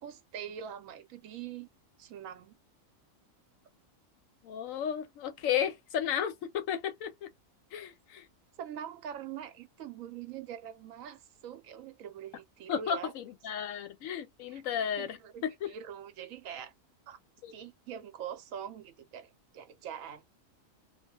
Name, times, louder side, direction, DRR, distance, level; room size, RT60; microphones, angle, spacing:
voice 1, 0.0-1.7 2.0-2.6 8.6-13.1 14.5-14.6 15.0-16.7 17.1-17.2 17.5-20.2, right 9 dB, 75° right, 1.0 m, -43 dB
voice 2, 4.4-7.3 7.7-8.3 12.7-15.7 17.4-17.5, left 8 dB, 75° left, 1.0 m, -34 dB
2.4 x 2.1 x 2.8 m
omnidirectional pair, 1.4 m